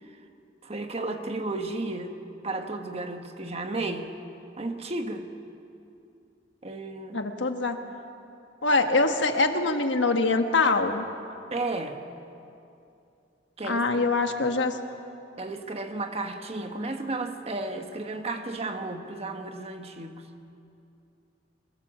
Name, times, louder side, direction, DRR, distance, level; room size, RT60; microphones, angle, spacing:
voice 1, 0.6-2.1 2.4-4.2 4.6-5.3 6.6-7.2 11.5-12.0 13.6-14.0 15.4-20.2, right 2 dB, 35° right, 6 dB, 1.3 m, -33 dB
voice 2, 7.1-7.8 8.6-11.1 13.7-14.8, left 3 dB, 80° left, 6 dB, 1.5 m, -24 dB
23.5 x 18.0 x 7.4 m, 2.7 s
head